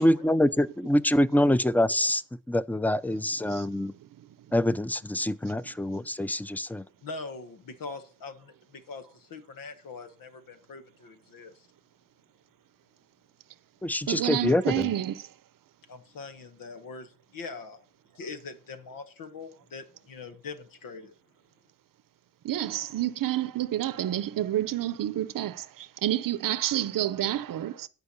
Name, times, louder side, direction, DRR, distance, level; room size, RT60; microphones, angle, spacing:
voice 1, 0.0-2.2 2.5-3.9 4.5-6.8 13.8-14.9, left 1 dB, 5° left, 0.6 m, -25 dB
voice 2, 3.3-4.1 5.2-5.3 14.1-15.3 22.4-27.9, right 12 dB, 80° right, 0.7 m, -29 dB
voice 3, 7.0-11.7 15.9-17.8 18.1-21.1, left 4 dB, 90° left, 1.3 m, -42 dB
11.5 x 4.6 x 6.8 m
cardioid pair, 55°, 33 cm